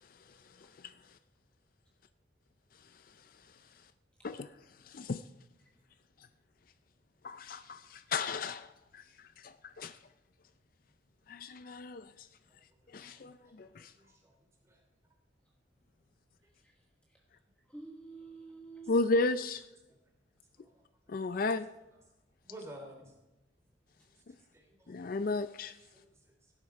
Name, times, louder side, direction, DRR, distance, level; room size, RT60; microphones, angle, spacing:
voice 1, 4.9-5.2 7.2-9.0 9.4-10.0 11.3-12.3 12.9-13.9 18.9-19.6 21.1-21.7 24.9-25.7, left 3 dB, 45° left, 0.4 m, -34 dB
voice 2, 12.8-13.3 13.6-14.8 19.9-20.0 20.5-21.4 22.4-23.1 24.3-25.0 25.9-26.5, right 1 dB, 15° right, 3.0 m, -54 dB
voice 3, 16.5-17.2 17.7-19.5, right 3 dB, 5° left, 1.2 m, -51 dB
17.0 x 11.0 x 4.8 m
head